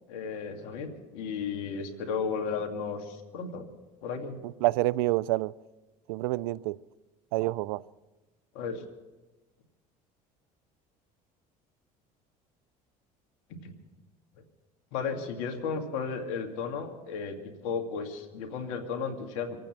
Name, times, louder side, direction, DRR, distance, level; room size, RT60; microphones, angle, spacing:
voice 1, 0.1-3.7 4.0-4.4 8.5-8.8 13.6-13.7 14.9-19.6, left 5 dB, 80° left, 2.1 m, -34 dB
voice 2, 4.6-5.5 6.1-6.8 7.3-7.8, right 18 dB, 80° right, 0.4 m, -27 dB
25.0 x 9.0 x 6.0 m
hypercardioid pair, 75°, 18 cm